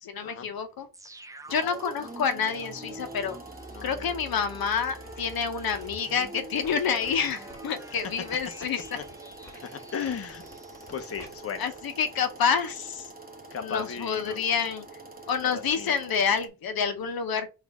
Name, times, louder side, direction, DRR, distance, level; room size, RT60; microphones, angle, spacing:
voice 1, 0.0-0.9 1.5-3.4 3.8-9.0 11.6-13.1 13.6-14.9 15.3-17.5, left 6 dB, 80° left, 0.9 m, -28 dB
sound 1, 0.9-11.7 12.1-12.2, right 2 dB, 10° right, 0.4 m, -46 dB
sound 2, 1.5-16.5, right 2 dB, 25° right, 1.0 m, -47 dB
sound 3, 3.5-4.3 4.7-12.8 13.2-13.3, equal, 5° left, 1.9 m, -52 dB
voice 2, 3.7-4.2 8.9-9.0 9.6-10.4 10.9-11.7 13.5-14.5 15.4-15.9, left 6 dB, 40° left, 0.8 m, -36 dB
4.1 x 2.7 x 4.7 m
wide cardioid pair, 105°, 35 cm